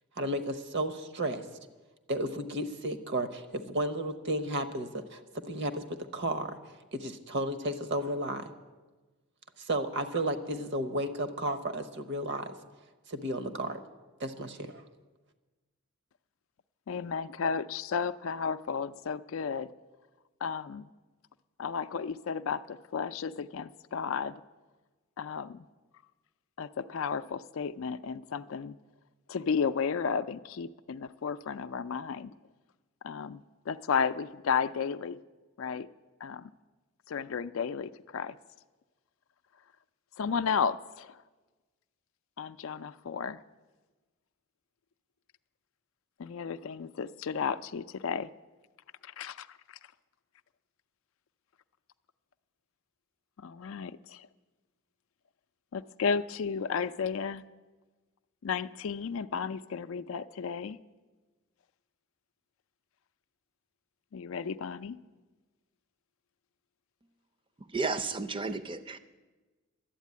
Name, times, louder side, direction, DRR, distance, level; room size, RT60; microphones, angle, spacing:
voice 1, 0.2-1.4 2.1-5.2 5.5-5.8 6.1-6.6 6.9-8.5 9.6-12.5 13.1-13.8 14.2-14.8, right 1 dB, 55° right, 10 dB, 0.9 m, -33 dB
voice 2, 16.9-19.7 20.4-20.9 21.6-24.4 25.2-25.7 26.6-28.8 29.3-32.3 33.0-35.2 35.6-35.9 36.2-36.5 37.1-38.4 40.2-41.2 42.4-43.4 46.2-48.3 49.0-49.8 53.4-54.3 55.7-57.4 58.4-60.8 64.1-65.0, left 6 dB, 60° left, 13 dB, 0.4 m, -33 dB
voice 3, 67.6-69.0, right 3 dB, 25° right, 11 dB, 0.5 m, -33 dB
11.5 x 8.2 x 9.4 m, 1.2 s
head